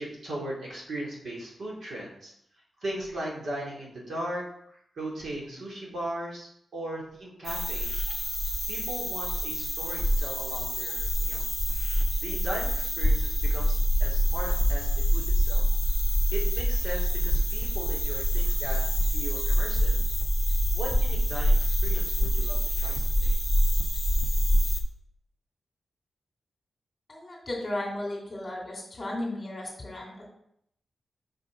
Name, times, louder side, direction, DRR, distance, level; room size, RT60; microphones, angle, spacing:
voice 1, 0.0-8.0 8.7-11.5 11.9-15.6 16.3-18.8 19.1-20.0 20.7-23.4, right 1 dB, 60° right, -3 dB, 2.6 m, -38 dB
sound 1, 7.4-24.8, equal, ahead, 1.0 m, -25 dB
voice 2, 27.1-30.3, left 1 dB, 25° left, -2 dB, 2.6 m, -35 dB
6.1 x 6.0 x 5.1 m, 0.71 s
wide cardioid pair, 180°, 0 cm